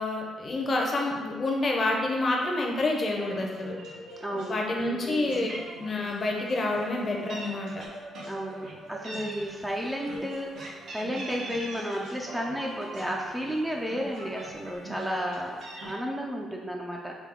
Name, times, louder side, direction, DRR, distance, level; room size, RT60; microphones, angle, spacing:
voice 1, 0.0-3.7 4.5-5.5 5.8-7.7, left 2 dB, 40° left, 0 dB, 0.6 m, -28 dB
sound 1, 3.1-15.9, right 1 dB, 85° right, 0.9 m, -44 dB
voice 2, 4.2-5.4 8.3-17.1, equal, 5° right, -1 dB, 0.4 m, -33 dB
Meow, 5.5-5.7 6.0-6.3 6.5-7.5 7.8-8.7 9.0-12.0 12.4-13.6 14.0-14.1 14.4-16.0, right 2 dB, 70° right, 0.6 m, -43 dB
3.4 x 2.3 x 3.6 m, 1.4 s
cardioid pair, 90°, 0 cm